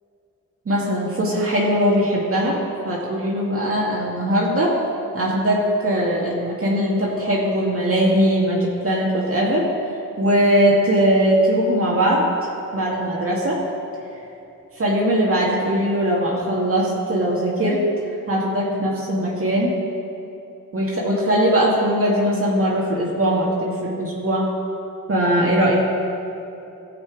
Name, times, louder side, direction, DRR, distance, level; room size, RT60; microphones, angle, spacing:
voice 1, 0.7-2.6 2.8-4.8 5.1-9.6 10.2-12.2 12.7-13.6 14.8-17.8 18.3-19.8 20.7-24.5 25.1-25.8, equal, 45° right, -5 dB, 2.2 m, -20 dB
16.0 x 7.6 x 4.7 m, 2.8 s
wide cardioid pair, 100°, 31 cm